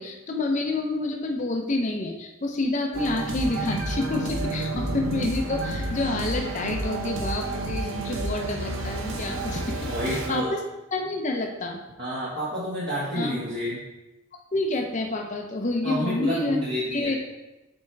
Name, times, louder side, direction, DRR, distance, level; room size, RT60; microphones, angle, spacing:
voice 1, 0.0-9.8 10.1-10.6 10.9-11.8 13.1-13.4 14.5-16.6 16.9-17.2, left 2 dB, 35° left, 2 dB, 0.6 m, -28 dB
sound 1, 2.9-10.3, right 2 dB, 70° right, 0.8 m, -30 dB
voice 2, 9.9-10.5 12.0-13.8 15.8-17.2, equal, 50° right, -8 dB, 1.3 m, -29 dB
7.2 x 4.4 x 3.3 m, 1.0 s
head